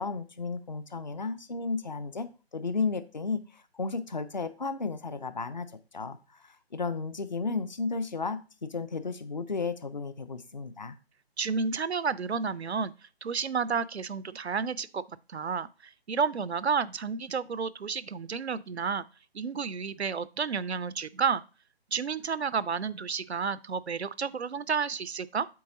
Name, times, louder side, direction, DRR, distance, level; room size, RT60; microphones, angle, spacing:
voice 1, 0.0-5.7 5.9-11.0, left 4 dB, 45° left, 0.5 m, -33 dB
voice 2, 11.4-12.9 13.2-15.0 15.3-19.0 19.3-21.4 21.9-25.5, right 5 dB, 90° right, 0.5 m, -31 dB
7.7 x 3.6 x 3.8 m
figure-of-eight pair, 150°, 32 cm